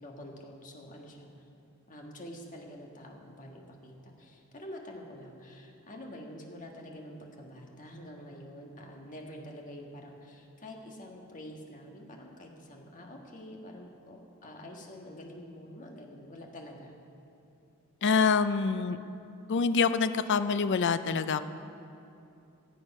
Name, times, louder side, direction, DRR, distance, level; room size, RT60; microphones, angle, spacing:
voice 1, 0.0-1.3 1.9-16.9, equal, 35° left, 1 dB, 1.6 m, -47 dB
voice 2, 18.0-19.0 19.5-21.4, left 5 dB, 55° left, 12 dB, 0.5 m, -26 dB
17.5 x 8.2 x 5.4 m, 2.7 s
head